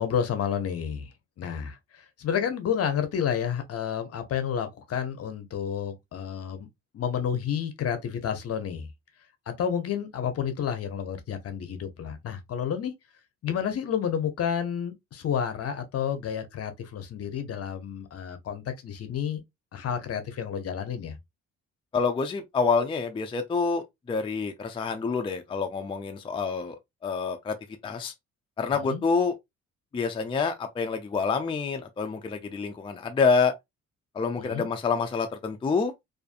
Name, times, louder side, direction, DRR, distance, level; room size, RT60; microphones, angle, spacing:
voice 1, 0.0-6.7 6.9-8.9 9.5-12.9 13.4-19.4 19.7-21.2 28.7-29.0 34.4-34.7, left 8 dB, 55° left, 0.7 m, -30 dB
voice 2, 21.9-26.8 27.0-27.6 27.8-28.1 28.6-29.3 29.9-33.5 34.2-35.9, left 5 dB, 20° left, 0.4 m, -27 dB
2.5 x 2.5 x 2.4 m
cardioid pair, 90°, 30 cm